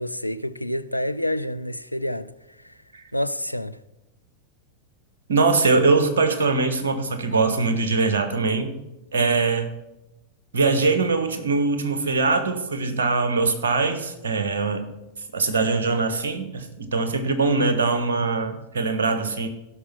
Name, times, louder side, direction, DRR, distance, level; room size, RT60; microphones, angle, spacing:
voice 1, 0.0-2.3 3.1-3.8, left 1 dB, 90° left, 0.4 m, -28 dB
voice 2, 5.3-8.7 9.1-9.7 10.5-14.9 15.3-19.5, right 3 dB, 65° right, 1.4 m, -22 dB
15.0 x 6.1 x 5.8 m
figure-of-eight pair, 90°, 0 cm